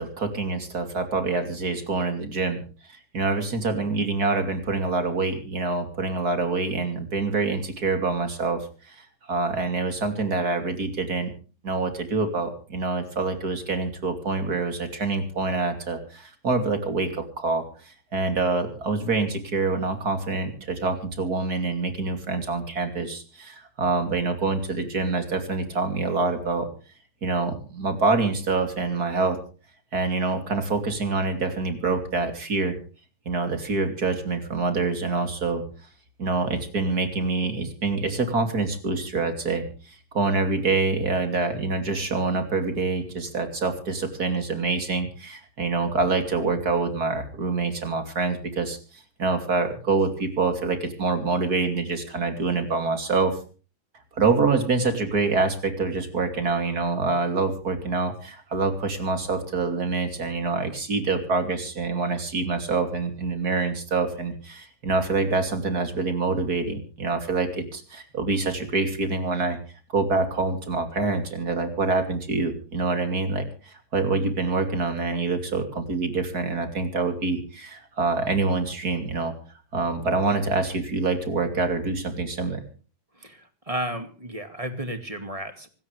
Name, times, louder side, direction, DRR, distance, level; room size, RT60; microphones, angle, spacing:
voice 1, 0.0-2.6 3.1-11.3 11.6-26.7 27.2-29.4 29.9-32.8 33.2-35.6 36.2-53.4 54.1-69.6 69.9-79.3 79.7-82.6, right 3 dB, 50° right, 6 dB, 3.3 m, -26 dB
voice 2, 83.2-85.7, right 1 dB, 15° right, 7 dB, 2.3 m, -33 dB
26.0 x 13.0 x 3.4 m, 0.38 s
omnidirectional pair, 2.2 m